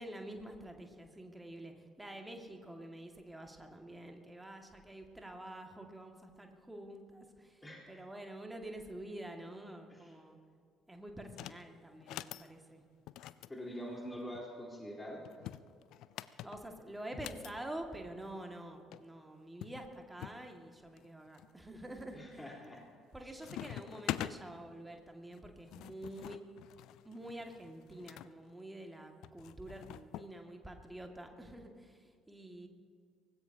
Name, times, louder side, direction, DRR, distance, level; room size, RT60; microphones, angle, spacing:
voice 1, 0.0-10.4 10.9-12.8 16.4-22.6 23.1-26.4 27.0-32.7, right 1 dB, 10° right, 3 dB, 2.1 m, -47 dB
voice 2, 7.6-8.1 9.9-10.1 13.5-15.2 22.1-22.8, equal, 15° left, -2 dB, 4.0 m, -45 dB
sound 1, 11.3-11.6 12.0-12.5 13.1-14.4 15.2-17.5 18.6-18.7 18.9-19.0 19.6-20.4 21.0-21.5 22.0-22.4 22.7-23.1 23.4-24.4 25.3-28.3 29.2-30.3, left 13 dB, 60° left, 0.4 m, -45 dB
24.0 x 18.5 x 2.9 m, 2.2 s
figure-of-eight pair, 50°, 0 cm